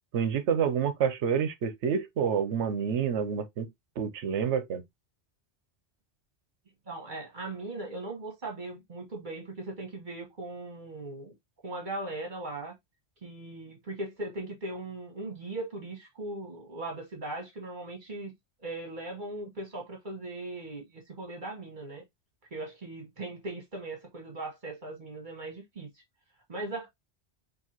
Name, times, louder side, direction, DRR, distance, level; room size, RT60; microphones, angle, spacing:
voice 1, 0.1-3.7 4.0-4.8, right 7 dB, 85° right, 1.0 m, -28 dB
voice 2, 6.9-11.3 11.6-12.7 13.2-18.3 18.6-22.0 22.5-25.9 26.5-26.9, right 2 dB, 45° right, 1.6 m, -39 dB
4.6 x 2.9 x 2.9 m
omnidirectional pair, 1.2 m